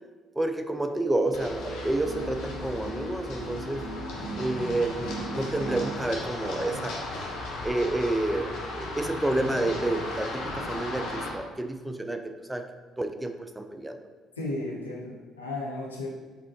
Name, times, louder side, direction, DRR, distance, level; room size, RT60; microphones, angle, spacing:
voice 1, 0.4-3.8 4.4-7.1 7.6-12.2 12.5-12.6 13.0-14.0, right 2 dB, 10° right, 7 dB, 0.4 m, -29 dB
sound 1, 0.9-6.0, right 3 dB, 70° right, 0.5 m, -39 dB
Run, 1.3-11.3, left 2 dB, 65° left, 0.9 m, -36 dB
voice 2, 14.4-16.1, left 2 dB, 85° left, -4 dB, 0.7 m, -34 dB
4.0 x 3.6 x 3.0 m, 1.4 s
figure-of-eight pair, 50°, 0 cm